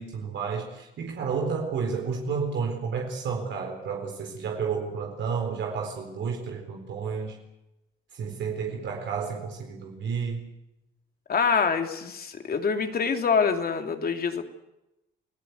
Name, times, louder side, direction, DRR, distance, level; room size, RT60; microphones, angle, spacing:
voice 1, 0.0-7.4 8.1-10.5, right 5 dB, 70° right, 2 dB, 4.3 m, -31 dB
voice 2, 11.3-14.4, left 5 dB, 50° left, 5 dB, 3.1 m, -25 dB
28.5 x 17.0 x 8.2 m, 0.91 s
cardioid pair, 90°, 20 cm